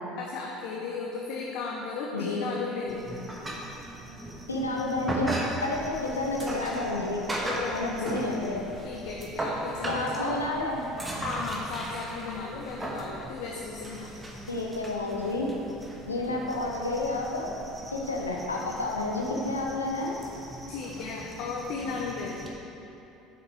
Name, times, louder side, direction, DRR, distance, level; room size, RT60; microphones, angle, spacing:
voice 1, 0.2-3.1 7.4-10.5 11.2-14.1 16.3-16.4 20.7-22.5, left 4 dB, 60° left, -1 dB, 0.7 m, -35 dB
voice 2, 2.1-2.5 4.5-7.2 7.7-8.6 9.9-10.8 14.5-15.5 16.1-17.5 17.9-20.1, left 2 dB, 85° left, -1 dB, 0.9 m, -30 dB
sound 1, 2.9-22.5, right 1 dB, 15° right, 1.4 m, -38 dB
7.8 x 6.5 x 4.7 m, 2.9 s
figure-of-eight pair, 65°, 0 cm